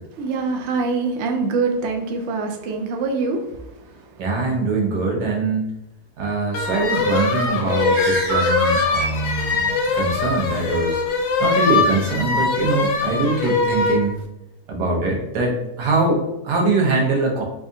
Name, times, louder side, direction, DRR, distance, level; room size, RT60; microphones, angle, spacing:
voice 1, 0.1-4.3 9.9-10.0, right 4 dB, 70° right, 2 dB, 0.6 m, -25 dB
voice 2, 4.2-5.7 6.2-9.7 9.9-14.1 14.7-17.4, right 3 dB, 85° right, -1 dB, 1.5 m, -22 dB
sound 1, 6.5-14.1, left 4 dB, 70° left, 0.8 m, -22 dB
Bird, 6.7-9.7, right 2 dB, 45° right, 1.0 m, -28 dB
4.7 x 2.3 x 2.6 m, 0.89 s
omnidirectional pair, 1.7 m